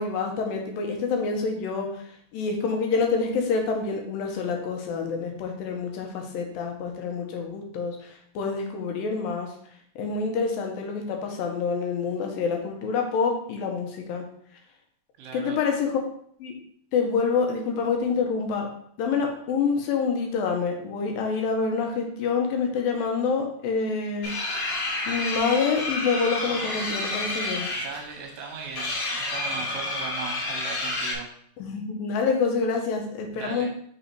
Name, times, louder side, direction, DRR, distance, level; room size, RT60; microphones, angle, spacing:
voice 1, 0.0-1.9 2.3-8.1 8.4-9.5 10.0-14.3 15.3-15.9 16.4-16.5 16.9-18.7 19.0-24.3 25.1-27.7 31.6-33.7, left 5 dB, 90° left, 2 dB, 2.7 m, -27 dB
voice 2, 15.2-15.7 27.7-31.3 33.3-33.7, right 5 dB, 70° right, 1 dB, 1.9 m, -38 dB
sound 1, 24.2-31.1, left 2 dB, 55° left, 2.1 m, -30 dB
5.4 x 4.0 x 4.6 m, 0.64 s
omnidirectional pair, 3.9 m